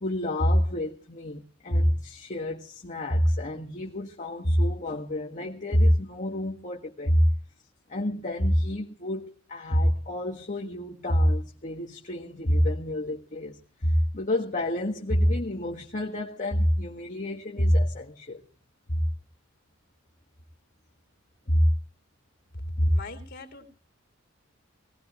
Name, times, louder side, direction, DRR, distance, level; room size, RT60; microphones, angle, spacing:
voice 1, 0.0-7.3 7.9-18.4 18.9-19.0 21.5-21.7 22.8-22.9, equal, 40° left, 1.7 m, -26 dB
voice 2, 22.8-23.8, left 2 dB, 55° left, 3.9 m, -40 dB
20.5 x 19.0 x 3.1 m
head